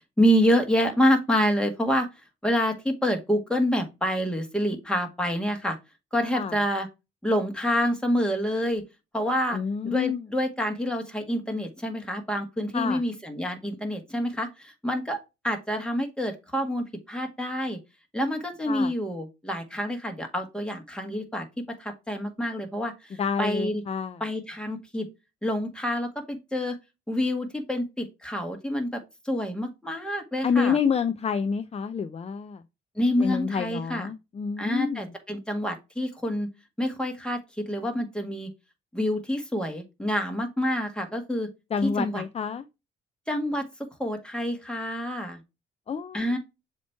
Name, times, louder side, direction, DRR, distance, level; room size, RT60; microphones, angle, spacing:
voice 1, 0.2-2.1 2.4-5.8 6.1-6.9 7.2-8.8 9.1-9.6 9.8-15.2 15.4-17.8 18.1-21.4 21.8-23.8 24.2-25.1 25.4-26.8 27.1-30.8 33.0-34.1 34.6-36.5 36.8-38.5 38.9-41.5 41.8-42.2 43.3-43.7 44.0-45.4 46.1-46.4, equal, 5° left, 1.7 m, -27 dB
voice 2, 9.5-10.3 12.7-13.0 18.7-18.9 23.2-24.2 30.4-32.6 33.2-35.1 41.7-42.6 45.9-46.4, left 6 dB, 30° left, 0.5 m, -28 dB
7.1 x 3.0 x 4.6 m
cardioid pair, 90°, 20 cm